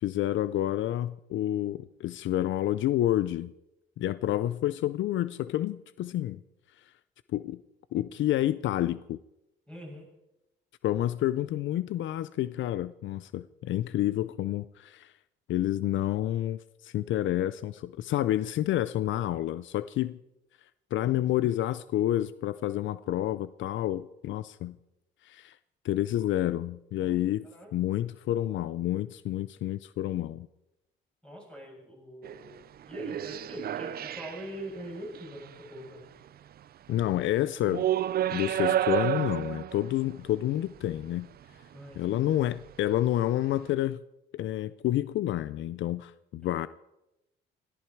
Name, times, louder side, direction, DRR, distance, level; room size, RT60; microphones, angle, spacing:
voice 1, 0.0-3.5 4.0-6.4 7.3-7.6 7.9-9.2 10.8-15.1 15.5-20.2 20.9-24.8 25.2-25.6 25.8-27.5 27.7-30.5 36.9-37.9 38.3-41.3 42.0-44.0 44.3-46.7, left 13 dB, 75° left, 16 dB, 0.5 m, -29 dB
voice 2, 9.7-10.1 27.0-27.2 27.5-27.7 31.2-36.1 41.7-42.2, equal, 5° left, -3 dB, 7.9 m, -43 dB
sound 1, 32.2-32.5 32.9-34.6 35.0-35.3 36.9-37.0 37.7-40.1 42.7-42.8, right 12 dB, 50° right, 0.5 m, -30 dB
18.0 x 14.0 x 4.6 m, 0.91 s
cardioid pair, 90°, 20 cm